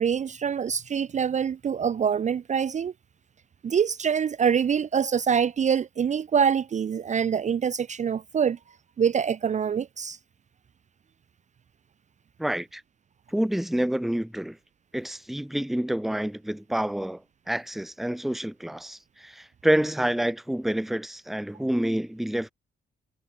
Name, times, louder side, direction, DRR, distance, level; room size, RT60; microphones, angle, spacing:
voice 1, 0.0-2.9 3.6-8.6 9.0-10.2, right 7 dB, 35° right, 0.5 m, -25 dB
voice 2, 12.4-12.8 13.3-14.6 14.9-17.2 17.5-22.5, right 1 dB, ahead, 0.7 m, -28 dB
cardioid pair, 90°, 20 cm